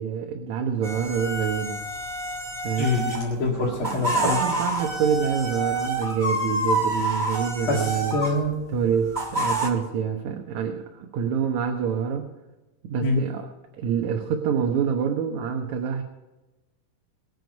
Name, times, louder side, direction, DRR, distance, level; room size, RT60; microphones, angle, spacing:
voice 1, 0.0-1.8 2.6-2.9 3.6-8.2 8.7-12.3 12.8-13.5 13.8-16.0, right 7 dB, 65° right, 3 dB, 2.4 m, -26 dB
sound 1, 0.8-3.3 3.7-8.4 9.1-9.7, right 1 dB, 15° right, 1.6 m, -28 dB
voice 2, 2.8-4.4 7.7-8.6 13.0-13.2, left 2 dB, 45° left, -2 dB, 2.4 m, -25 dB
23.0 x 8.0 x 5.3 m, 1.1 s
omnidirectional pair, 3.7 m